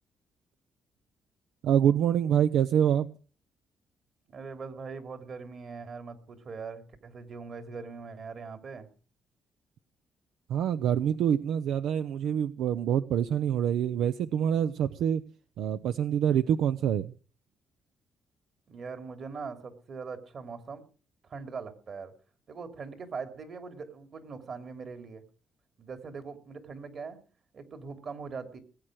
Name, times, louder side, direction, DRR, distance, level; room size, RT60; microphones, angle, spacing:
voice 1, 1.6-3.1 10.5-15.2 15.6-17.1, right 9 dB, 80° right, 12 dB, 0.6 m, -26 dB
voice 2, 4.3-8.9 18.7-20.8 21.2-22.1 22.5-25.2 25.8-27.2 27.5-28.6, right 5 dB, 50° right, 8 dB, 2.9 m, -41 dB
20.0 x 8.9 x 6.3 m, 0.39 s
cardioid pair, 90°, 0 cm